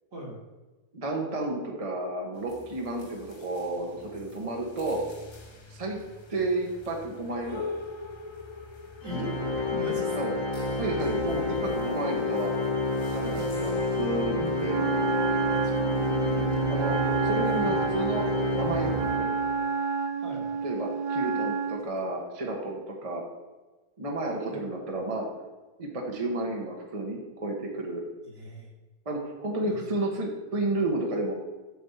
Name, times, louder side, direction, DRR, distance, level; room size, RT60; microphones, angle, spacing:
voice 1, 0.9-5.0 5.7-6.0 6.3-7.7 10.2-10.3 10.8-12.5 13.1-14.8 16.7-16.9 17.2-18.3 18.5-19.3 20.6-23.2 24.0-25.3 25.8-28.0 29.0-31.3, right 2 dB, 25° right, -1 dB, 1.1 m, -31 dB
sound 1, 2.4-19.2, left 3 dB, 35° left, 0.5 m, -45 dB
Organ, 9.0-19.7, left 2 dB, 55° left, 2.0 m, -29 dB
voice 2, 9.0-9.4 9.7-10.4 11.2-11.9 15.5-15.9 16.2-16.6 20.2-20.5 24.4-24.6 28.2-28.7 29.7-29.8, equal, 55° right, -3 dB, 2.6 m, -40 dB
Wind instrument woodwind instrument, 14.6-21.9, right 5 dB, 85° right, 1.6 m, -29 dB
7.9 x 5.2 x 7.0 m, 1.2 s
omnidirectional pair, 1.7 m